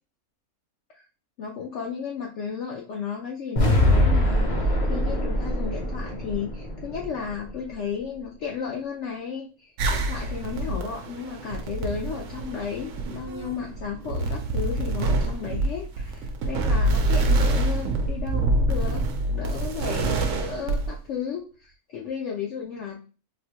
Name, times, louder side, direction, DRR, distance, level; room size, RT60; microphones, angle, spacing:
voice 1, 1.4-19.0 19.3-23.0, left 6 dB, 65° left, -1 dB, 0.8 m, -34 dB
sound 1, 3.6-7.7, left 1 dB, 35° left, 0.6 m, -23 dB
sound 2, 9.8-21.0, right 2 dB, 70° right, 0.9 m, -26 dB
4.0 x 2.1 x 2.9 m, 0.36 s
omnidirectional pair, 1.5 m